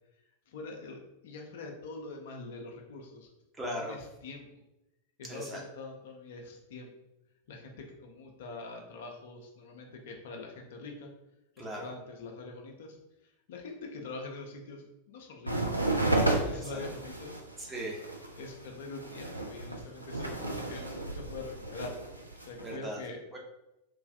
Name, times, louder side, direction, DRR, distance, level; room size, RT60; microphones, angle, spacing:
voice 1, 0.5-3.3 3.6-4.6 5.2-6.9 7.5-11.1 11.6-13.0 13.2-15.8 16.1-17.4 18.4-22.0 22.4-23.2, left 3 dB, 55° left, 1 dB, 0.5 m, -44 dB
voice 2, 3.6-4.0 5.3-5.6 11.6-11.9 16.5-16.8 17.6-18.0 22.6-23.0 23.3-23.4, equal, 15° right, -2 dB, 0.7 m, -38 dB
sound 1, 15.5-22.8, right 2 dB, 85° right, 0.3 m, -33 dB
3.0 x 2.3 x 2.5 m, 0.92 s
figure-of-eight pair, 90°, 0 cm